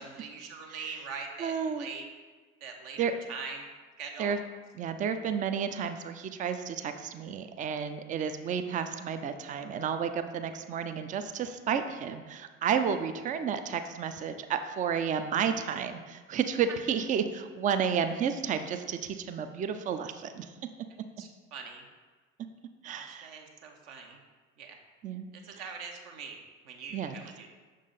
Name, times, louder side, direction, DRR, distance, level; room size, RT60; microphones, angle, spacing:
voice 1, 0.0-2.1 2.6-3.6 4.0-4.3 21.2-21.8 22.8-24.2 24.6-24.8 25.3-27.5, right 5 dB, 60° right, 2 dB, 1.0 m, -43 dB
voice 2, 1.4-1.9 3.0-3.2 4.2-4.4 4.7-20.5 22.8-23.3 25.0-25.3 26.9-27.2, right 7 dB, 20° right, 9 dB, 0.4 m, -31 dB
6.4 x 3.7 x 4.0 m, 1.4 s
figure-of-eight pair, 60°, 38 cm